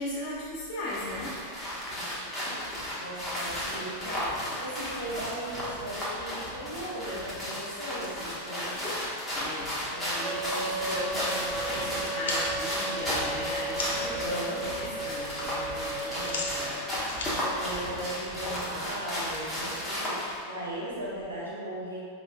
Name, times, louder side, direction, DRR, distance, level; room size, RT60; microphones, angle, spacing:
voice 1, 0.0-1.3 9.3-14.3 14.6-16.8, left 1 dB, 40° left, -7 dB, 1.3 m, -37 dB
sound 1, 0.9-20.4, left 1 dB, 5° left, 1.1 m, -34 dB
voice 2, 1.9-8.8 9.8-10.9 11.2-11.3 13.9-14.7 16.1-16.4 17.4-22.0, right 1 dB, 80° right, -7 dB, 1.0 m, -38 dB
Wind instrument woodwind instrument, 10.2-16.8, right 2 dB, 40° right, 0.8 m, -36 dB
sound 2, 12.2-14.2 14.6-15.0 15.3-18.5, left 2 dB, 60° left, 0.5 m, -38 dB
4.9 x 3.1 x 2.3 m, 2.2 s
figure-of-eight pair, 90°, 0 cm